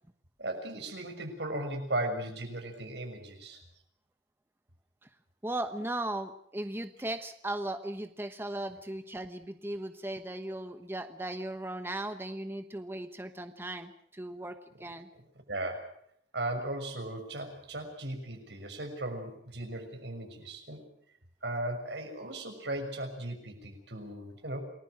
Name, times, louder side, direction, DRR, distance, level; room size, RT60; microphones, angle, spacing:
voice 1, 0.4-3.6 14.8-14.9 15.1-15.2 15.5-15.9 16.3-20.8 21.4-24.6, right 1 dB, 75° right, 5 dB, 6.5 m, -37 dB
voice 2, 5.4-15.1, right 1 dB, 15° right, 8 dB, 1.1 m, -37 dB
29.0 x 20.5 x 6.3 m, 0.67 s
head